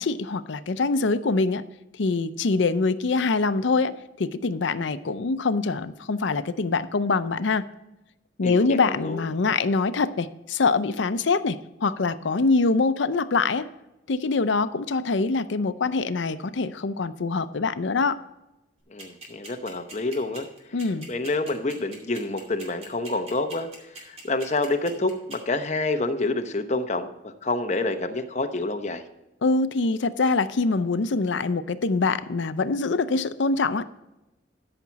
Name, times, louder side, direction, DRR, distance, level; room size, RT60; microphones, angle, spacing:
voice 1, 0.0-1.6 2.0-7.6 8.4-13.7 14.1-18.2 20.7-21.1 29.4-33.9, left 3 dB, 80° left, 12 dB, 0.6 m, -24 dB
voice 2, 8.4-9.2 18.9-20.8 21.1-29.0, left 2 dB, 40° left, 7 dB, 0.8 m, -28 dB
sound 1, 19.0-25.4, right 2 dB, 35° right, 2.6 m, -41 dB
13.0 x 5.9 x 4.1 m, 0.95 s
head